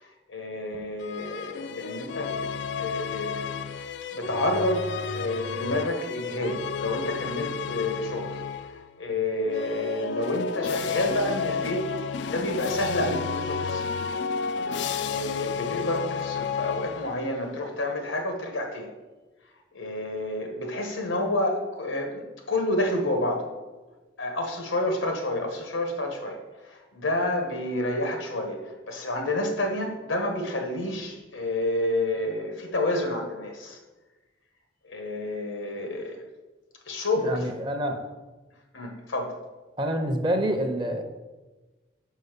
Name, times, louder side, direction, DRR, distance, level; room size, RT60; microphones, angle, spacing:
voice 1, 0.0-2.5 2.8-4.9 5.1-8.4 8.7-11.8 12.3-13.9 15.0-18.9 19.7-23.5 24.2-33.8 34.8-36.2 36.9-37.5 38.7-39.3, left 1 dB, 90° left, 4 dB, 1.3 m, -29 dB
sound 1, 1.0-8.9 9.5-17.4, left 6 dB, 65° left, 0.3 m, -32 dB
voice 2, 37.2-38.0 39.8-41.0, right 1 dB, 25° right, 5 dB, 0.6 m, -27 dB
5.5 x 5.0 x 6.6 m, 1.2 s
head